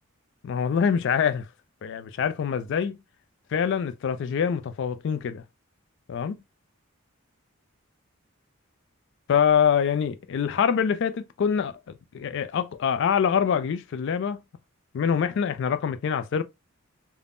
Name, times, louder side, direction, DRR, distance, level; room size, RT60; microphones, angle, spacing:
voice 1, 0.4-1.5 1.8-3.0 3.5-5.4 6.1-6.4 9.3-14.4 14.9-16.4, left 7 dB, 55° left, 0.3 m, -25 dB
3.4 x 2.0 x 2.4 m
head